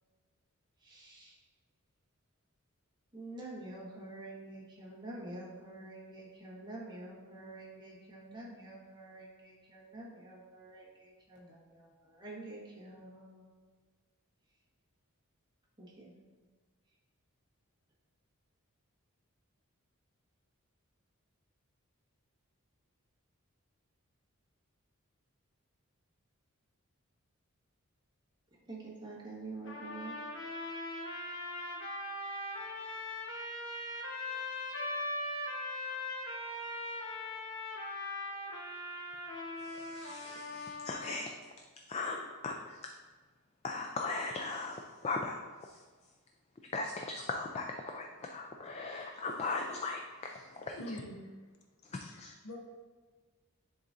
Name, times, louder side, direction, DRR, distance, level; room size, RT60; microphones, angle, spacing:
voice 1, 0.8-1.4 3.1-13.6 15.8-16.1 28.5-30.2, right 2 dB, 20° right, -5 dB, 1.4 m, -47 dB
sound 1, 29.6-41.2, left 1 dB, 60° left, 1.1 m, -40 dB
voice 2, 39.6-41.3 41.9-42.9 43.6-45.8 46.7-51.0 51.9-52.3, left 3 dB, 30° left, 2 dB, 0.3 m, -39 dB
voice 3, 50.8-51.3 52.0-52.6, equal, 85° left, 1 dB, 1.0 m, -44 dB
10.0 x 3.9 x 2.6 m, 1.4 s
head